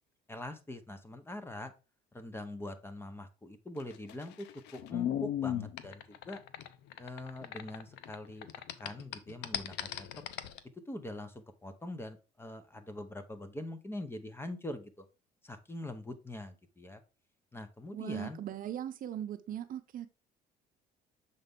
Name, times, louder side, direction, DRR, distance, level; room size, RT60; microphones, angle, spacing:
voice 1, 0.3-1.7 2.1-6.4 7.0-8.5 8.8-10.1 10.9-15.1 15.4-17.0 17.5-18.4, left 1 dB, 15° left, 9 dB, 0.8 m, -43 dB
sound 1, 3.8-8.2 8.4-10.6, left 11 dB, 85° left, 0.6 m, -37 dB
voice 2, 17.9-20.1, right 10 dB, 55° right, 10 dB, 0.7 m, -39 dB
6.7 x 4.0 x 3.6 m, 0.31 s
cardioid pair, 110°, 17 cm